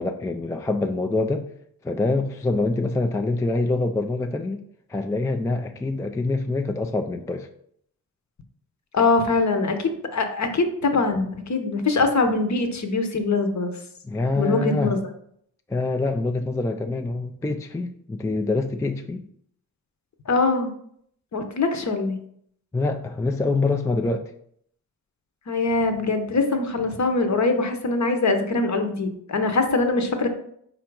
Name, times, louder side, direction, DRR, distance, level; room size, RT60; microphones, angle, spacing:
voice 1, 0.0-1.5 1.8-4.6 4.9-7.5 14.0-14.9 15.7-19.2 22.7-24.3, left 2 dB, 10° left, 5 dB, 0.3 m, -25 dB
voice 2, 8.9-13.7 14.4-15.0 20.3-20.7 21.3-22.2 25.5-30.3, left 3 dB, 45° left, 6 dB, 0.9 m, -23 dB
4.2 x 2.6 x 4.6 m, 0.67 s
supercardioid pair, 45°, 41 cm